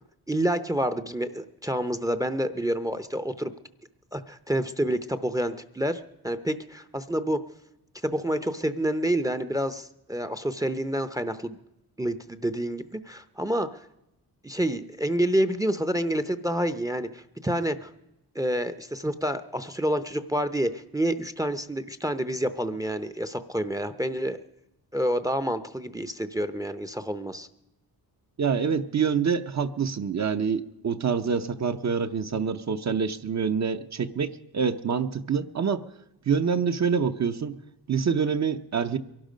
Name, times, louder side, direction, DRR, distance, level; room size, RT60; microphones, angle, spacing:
voice 1, 0.3-3.5 4.1-7.4 8.0-11.6 12.0-13.8 14.4-17.9 18.3-24.4 24.9-27.5, right 1 dB, 10° right, 12 dB, 0.6 m, -28 dB
voice 2, 28.4-35.8 36.3-37.6 37.9-39.0, right 6 dB, 45° right, 9 dB, 0.8 m, -26 dB
22.5 x 12.0 x 5.1 m, 0.88 s
cardioid pair, 105°, 38 cm